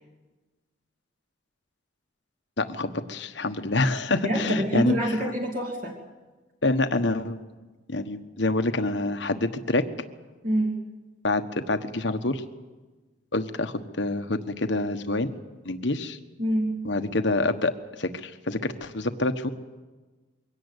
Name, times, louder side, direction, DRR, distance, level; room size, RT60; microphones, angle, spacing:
voice 1, 2.6-4.9 6.6-7.4 7.9-9.8 11.2-12.4 13.3-15.3 15.6-16.2 16.8-17.7 18.0-19.5, left 2 dB, 60° left, 9 dB, 1.2 m, -26 dB
voice 2, 4.2-6.0 10.4-10.8 16.4-16.7, equal, 45° right, -1 dB, 2.6 m, -26 dB
23.0 x 17.5 x 8.1 m, 1.2 s
head